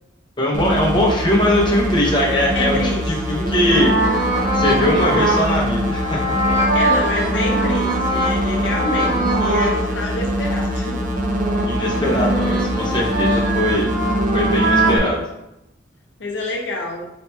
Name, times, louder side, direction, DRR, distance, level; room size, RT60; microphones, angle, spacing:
voice 1, 0.4-2.8 3.1-3.9 4.5-6.5 11.6-13.9 14.3-15.3, left 1 dB, 25° left, -3 dB, 0.6 m, -20 dB
sound 1, 0.5-15.0, equal, 40° right, 0.4 m, -24 dB
voice 2, 2.5-3.5 6.5-11.0 16.2-17.1, left 2 dB, 65° left, 1 dB, 0.5 m, -27 dB
sound 2, 3.7-9.8 10.2-15.0, right 1 dB, 65° right, 1.0 m, -22 dB
4.2 x 2.7 x 2.2 m, 0.87 s
head